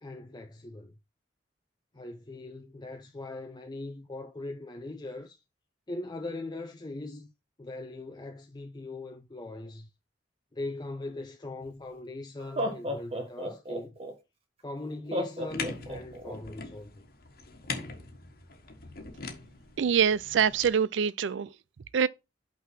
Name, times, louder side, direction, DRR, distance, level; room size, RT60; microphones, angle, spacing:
voice 1, 0.0-0.9 1.9-5.4 5.9-7.3 7.6-9.9 10.5-13.9 14.6-17.0, left 2 dB, 25° left, 0.5 m, -40 dB
Laughter, 11.7-11.8 12.4-14.1 15.1-16.3, equal, 35° right, 1.3 m, -33 dB
sound 1, 15.5-20.7, left 4 dB, 55° left, 1.3 m, -41 dB
voice 2, 19.8-21.5 21.9-22.1, right 7 dB, 85° right, 0.4 m, -25 dB
5.7 x 3.8 x 6.0 m
head